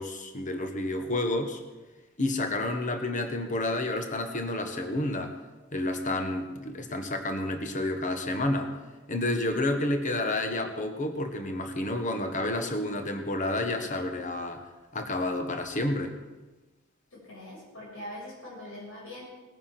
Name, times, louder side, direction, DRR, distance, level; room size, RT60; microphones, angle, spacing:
voice 1, 0.0-1.6 2.2-5.4 5.7-8.7 9.1-14.6 14.9-16.1, left 1 dB, 40° left, 5 dB, 1.5 m, -30 dB
voice 2, 17.1-19.3, left 1 dB, 80° left, -4 dB, 6.7 m, -42 dB
19.5 x 9.8 x 6.0 m, 1.2 s
head